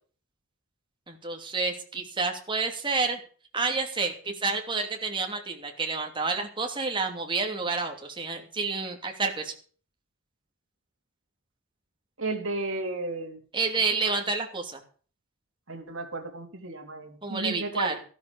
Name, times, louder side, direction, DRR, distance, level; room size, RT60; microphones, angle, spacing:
voice 1, 1.1-3.2 3.5-9.5 13.5-14.8 17.2-18.0, right 4 dB, 25° right, 3 dB, 2.8 m, -29 dB
voice 2, 12.2-13.4 14.1-14.2 15.7-18.0, right 2 dB, 65° right, 3 dB, 3.5 m, -33 dB
13.5 x 12.5 x 5.2 m, 0.41 s
head